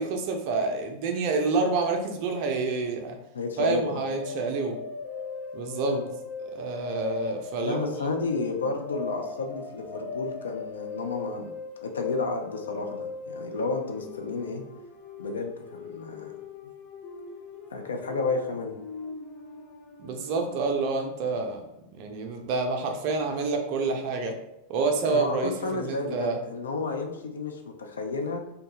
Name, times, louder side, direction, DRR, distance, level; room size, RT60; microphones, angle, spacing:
voice 1, 0.0-3.2 3.6-4.8 5.5-6.0 6.5-7.9 20.0-21.6 21.9-24.4 24.7-26.4, right 4 dB, 45° right, 4 dB, 0.4 m, -28 dB
voice 2, 3.3-4.0 5.9-6.0 7.6-11.5 11.8-14.6 15.2-16.3 17.7-18.8 25.1-28.4, left 3 dB, 70° left, 3 dB, 0.4 m, -31 dB
sound 1, 3.9-21.3, left 5 dB, 45° left, 0.8 m, -39 dB
2.6 x 2.2 x 2.9 m, 0.85 s
figure-of-eight pair, 90°, 0 cm